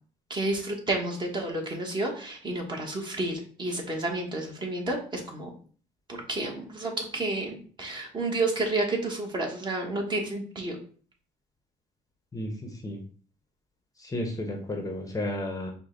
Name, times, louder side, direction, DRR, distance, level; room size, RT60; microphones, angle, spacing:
voice 1, 0.3-5.5 6.1-10.8, right 2 dB, 25° right, 0 dB, 1.2 m, -30 dB
voice 2, 12.3-13.0 14.0-15.7, left 1 dB, 20° left, 3 dB, 0.8 m, -33 dB
4.9 x 2.2 x 3.8 m, 0.43 s
cardioid pair, 110°, 17 cm